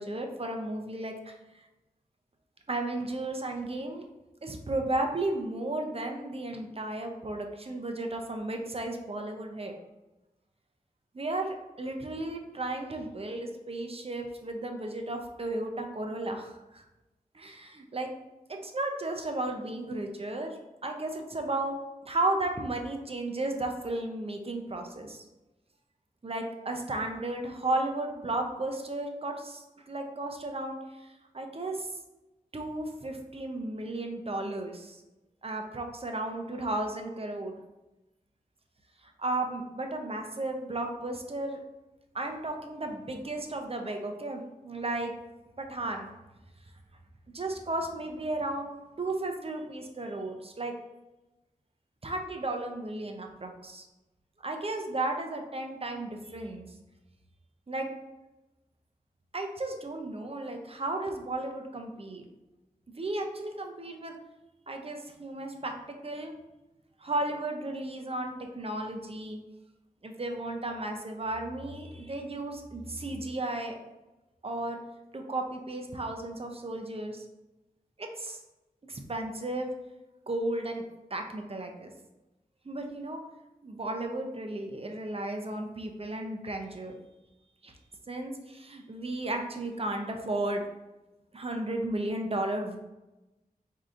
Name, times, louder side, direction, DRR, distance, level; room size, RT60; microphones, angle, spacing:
voice 1, 0.0-1.4 2.7-4.1 4.4-9.7 11.1-16.8 17.3-18.1 18.5-20.6 20.8-25.2 26.2-31.9 32.5-35.0 35.4-37.5 39.0-41.6 42.1-45.1 45.6-46.1 47.3-50.7 52.0-53.9 54.4-56.7 57.7-57.9 59.3-62.2 63.0-64.2 64.7-66.4 67.0-69.4 70.0-73.8 74.4-74.8 75.1-77.3 78.0-78.4 78.9-79.7 80.3-80.8 81.1-81.9 82.6-83.2 83.6-86.9 87.6-87.7 88.1-90.7 91.3-92.8, right 2 dB, 40° right, 3 dB, 0.6 m, -34 dB
4.6 x 2.7 x 2.5 m, 1.0 s
wide cardioid pair, 45°, 15 cm